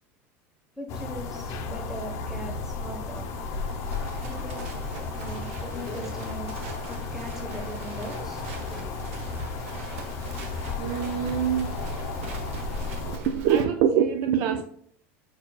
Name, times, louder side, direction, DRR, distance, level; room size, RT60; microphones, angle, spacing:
voice 1, 0.8-3.3 4.2-4.7 5.0-6.5 6.9-8.4, equal, 5° right, 0 dB, 1.0 m, -40 dB
sound 1, 0.9-13.2, left 3 dB, 45° left, 0.6 m, -34 dB
Livestock farm animals working animals, 2.3-13.6, right 1 dB, 85° right, 0.9 m, -40 dB
voice 2, 10.8-11.8 13.0-14.6, right 8 dB, 50° right, 8 dB, 0.3 m, -24 dB
4.7 x 4.5 x 2.3 m, 0.64 s
supercardioid pair, 150°, 7 cm